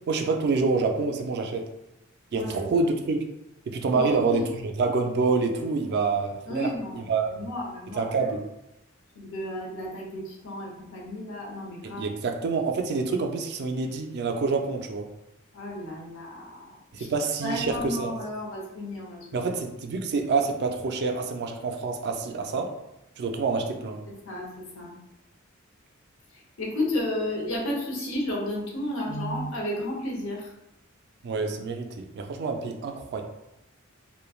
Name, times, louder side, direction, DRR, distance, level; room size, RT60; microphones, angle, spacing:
voice 1, 0.1-1.6 2.3-3.2 3.7-6.7 6.9-7.3 7.9-8.4 12.0-15.1 16.9-18.1 19.3-22.7 23.2-24.0 31.2-33.2, right 4 dB, 50° right, 4 dB, 0.3 m, -27 dB
voice 2, 2.3-2.7 3.9-4.4 6.5-8.1 9.1-12.1 15.5-17.1 17.4-19.5 24.2-24.9 26.3-30.5, left 1 dB, 65° left, -2 dB, 0.8 m, -33 dB
3.1 x 2.2 x 2.3 m, 0.87 s
head